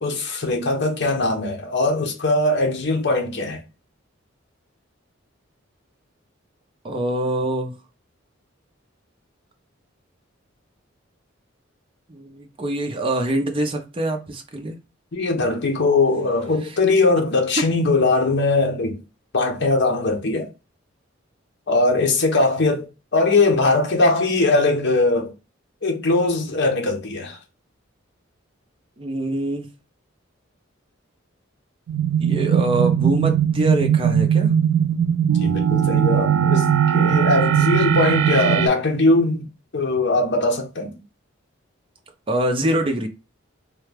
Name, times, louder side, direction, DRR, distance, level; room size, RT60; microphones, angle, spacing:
voice 1, 0.0-3.6 15.1-19.0 19.3-20.5 21.7-25.3 25.8-27.4 35.4-39.5 39.7-40.9, left 2 dB, 60° left, 0.9 m, -20 dB
voice 2, 6.8-7.7 12.1-14.8 16.6-16.8 17.6-17.7 29.0-29.7 32.2-34.5 42.3-43.1, right 1 dB, 25° right, 0.6 m, -24 dB
sound 1, 31.9-38.7, right 9 dB, 90° right, 0.4 m, -19 dB
3.2 x 2.3 x 3.3 m
head